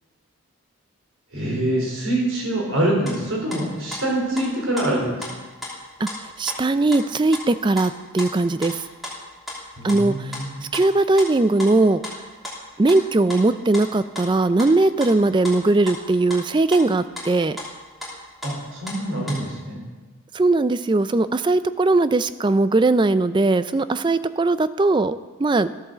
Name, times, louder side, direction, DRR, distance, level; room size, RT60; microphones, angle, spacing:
voice 1, 1.3-5.3 9.8-10.5 18.4-19.8, right 1 dB, 70° right, -1 dB, 4.2 m, -25 dB
sound 1, 3.1-3.2 3.5-5.3 5.6-6.2 6.5-6.6 6.9-7.0 7.3-7.9 8.2-8.3 8.6-8.7 9.0-9.6 9.9-10.0 10.3-10.5 10.7-11.3 11.6-11.8 12.0-13.4 13.7-13.8 14.1-15.6 15.9-16.4 16.7-17.3 17.6-17.7 18.0-18.1 18.4-19.0 19.3-19.4, left 1 dB, ahead, 3.0 m, -34 dB
voice 2, 6.4-8.8 9.8-10.3 10.7-12.0 12.8-17.6 20.3-25.7, right 2 dB, 20° right, 14 dB, 0.3 m, -19 dB
13.5 x 8.8 x 6.8 m, 1.3 s
head